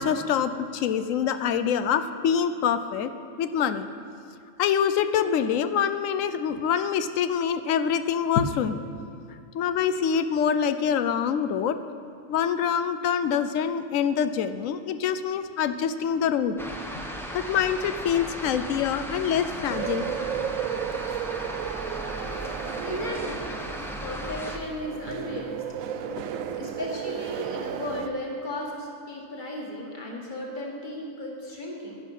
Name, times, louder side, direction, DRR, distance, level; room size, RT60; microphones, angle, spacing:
voice 1, 0.0-3.1 3.4-3.9 4.6-8.8 9.5-11.8 12.3-16.6 17.3-20.1 26.1-26.6, left 8 dB, 85° left, 11 dB, 1.0 m, -25 dB
sound 1, 16.6-24.6, equal, ahead, 0.7 m, -36 dB
sound 2, 19.7-28.1, right 9 dB, 90° right, 1.0 m, -33 dB
voice 2, 22.8-23.4 24.0-25.8 26.6-32.0, left 1 dB, 40° left, -2 dB, 1.9 m, -35 dB
10.5 x 10.0 x 5.5 m, 2.6 s
omnidirectional pair, 1.3 m